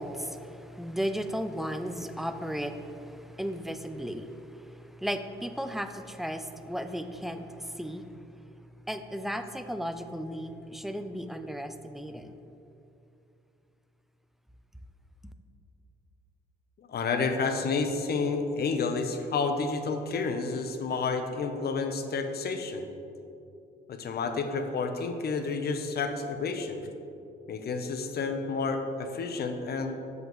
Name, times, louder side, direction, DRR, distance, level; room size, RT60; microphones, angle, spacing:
voice 1, 0.0-8.1 8.9-12.3, equal, ahead, 8 dB, 0.4 m, -35 dB
voice 2, 16.8-22.9 23.9-26.9 27.5-30.0, left 4 dB, 55° left, 7 dB, 0.7 m, -30 dB
8.0 x 7.3 x 3.1 m, 2.7 s
cardioid pair, 90°, 20 cm